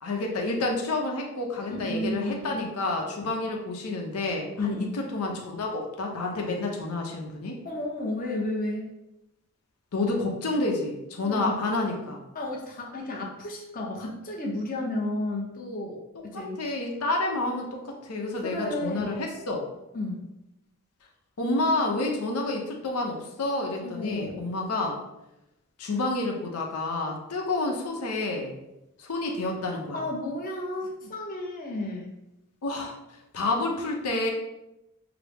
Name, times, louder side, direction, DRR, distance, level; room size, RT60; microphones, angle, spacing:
voice 1, 0.0-7.6 9.9-12.2 16.3-19.6 21.4-25.0 25.8-28.5 29.0-30.0 32.6-32.9 33.3-34.3, left 2 dB, 85° left, 1 dB, 0.7 m, -29 dB
voice 2, 1.8-2.7 4.6-4.9 7.6-8.9 11.2-11.6 12.3-16.6 18.4-19.2 19.9-20.2 23.8-24.4 29.9-32.1, left 2 dB, 40° left, -1 dB, 0.7 m, -32 dB
5.9 x 2.0 x 3.4 m, 0.92 s
head